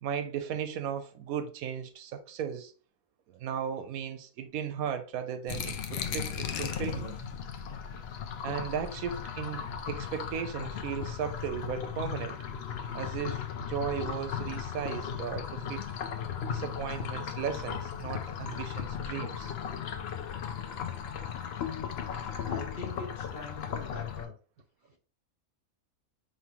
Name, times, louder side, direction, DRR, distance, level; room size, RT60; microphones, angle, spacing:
voice 1, 0.0-2.7 3.3-7.2 8.4-12.4 12.9-15.9 16.4-19.5, right 8 dB, 90° right, 1.1 m, -36 dB
sound 1, 5.5-24.2, left 7 dB, 60° left, 0.7 m, -36 dB
voice 2, 22.2-24.3, left 3 dB, 45° left, 1.2 m, -43 dB
5.0 x 3.1 x 3.0 m
omnidirectional pair, 1.5 m